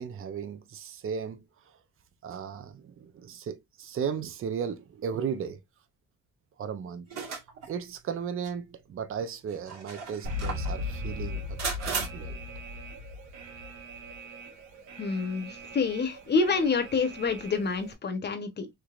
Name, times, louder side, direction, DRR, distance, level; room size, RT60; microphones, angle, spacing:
voice 1, 0.0-1.4 2.2-5.6 6.6-7.0 7.7-11.4 11.9-12.4, right 7 dB, 45° right, 0.6 m, -35 dB
sound 1, 7.1-7.7 8.4-8.5 9.5-10.7 11.6-12.1, right 5 dB, 60° right, 1.5 m, -35 dB
Alarm, 10.2-17.9, left 2 dB, 85° right, 1.2 m, -38 dB
voice 2, 15.0-18.7, left 4 dB, 35° left, 0.9 m, -28 dB
3.4 x 3.1 x 2.4 m
cardioid pair, 90°, 30 cm